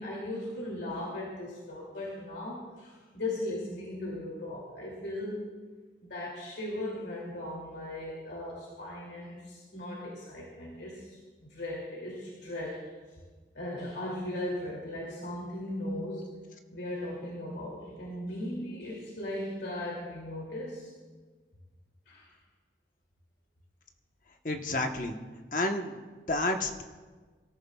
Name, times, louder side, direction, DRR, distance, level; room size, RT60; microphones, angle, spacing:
voice 1, 0.0-5.4 6.0-12.8 13.5-16.2 16.7-20.9 22.1-22.3, left 1 dB, 90° left, -4 dB, 2.8 m, -37 dB
voice 2, 24.4-25.2 25.5-25.9 26.3-26.8, left 2 dB, 50° left, 4 dB, 1.2 m, -30 dB
24.0 x 14.0 x 2.4 m, 1.4 s
head